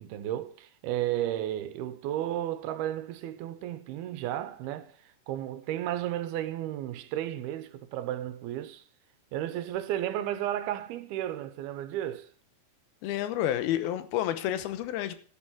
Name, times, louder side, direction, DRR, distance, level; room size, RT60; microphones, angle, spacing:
voice 1, 0.0-4.9 5.3-8.8 9.3-12.3, right 12 dB, 85° right, 2.8 m, -33 dB
voice 2, 13.0-15.1, left 12 dB, 90° left, 2.8 m, -29 dB
12.0 x 9.9 x 6.2 m
omnidirectional pair, 4.4 m